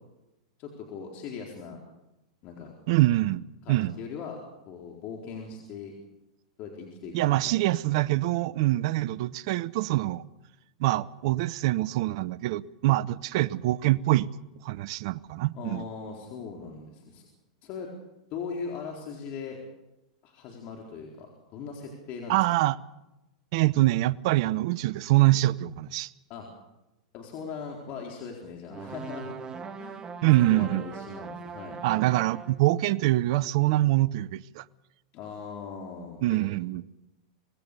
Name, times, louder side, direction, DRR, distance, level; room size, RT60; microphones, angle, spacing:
voice 1, 0.6-1.8 2.4-2.7 3.6-4.4 4.6-5.9 6.6-7.7 15.5-17.3 17.6-17.9 18.3-19.6 20.2-22.4 26.3-26.5 27.1-29.3 29.8-30.1 30.5-31.8 35.1-36.4, left 5 dB, 45° left, 4.3 m, -39 dB
voice 2, 2.9-3.9 7.1-10.2 10.8-14.3 14.6-15.9 22.3-22.8 23.5-26.1 30.2-30.8 31.8-34.6 36.2-36.8, right 17 dB, 55° right, 0.7 m, -24 dB
sound 1, 28.7-32.7, right 5 dB, 20° right, 1.4 m, -40 dB
25.5 x 19.5 x 6.8 m
hypercardioid pair, 110°, 3 cm